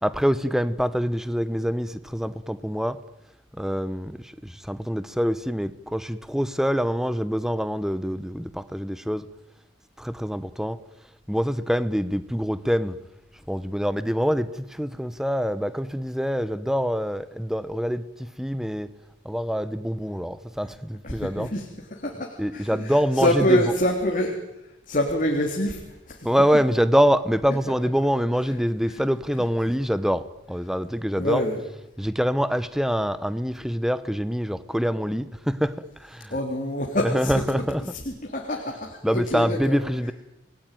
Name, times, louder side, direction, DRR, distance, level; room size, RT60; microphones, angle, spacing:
voice 1, 0.0-3.0 3.6-9.3 10.0-10.8 11.3-13.0 13.5-18.9 19.2-21.6 22.4-23.8 26.2-31.5 32.0-36.4 37.0-37.9 39.0-40.1, equal, ahead, 1.0 m, -25 dB
voice 2, 21.0-24.4 24.6-26.3 28.9-29.1 31.1-31.6 36.3-37.4 37.9-39.8, left 1 dB, 40° left, 3.5 m, -26 dB
29.5 x 20.5 x 9.3 m
head